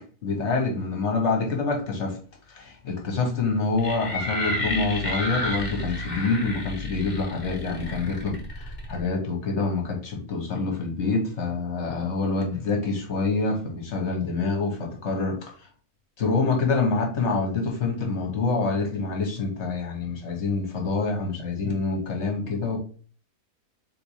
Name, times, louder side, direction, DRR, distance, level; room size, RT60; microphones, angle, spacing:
voice 1, 0.2-2.2 2.5-15.4 16.2-22.8, left 3 dB, 50° left, 1.4 m, -26 dB
sound 1, 3.8-9.1, left 1 dB, 35° left, 1.0 m, -32 dB
3.7 x 3.3 x 4.1 m
omnidirectional pair, 1.6 m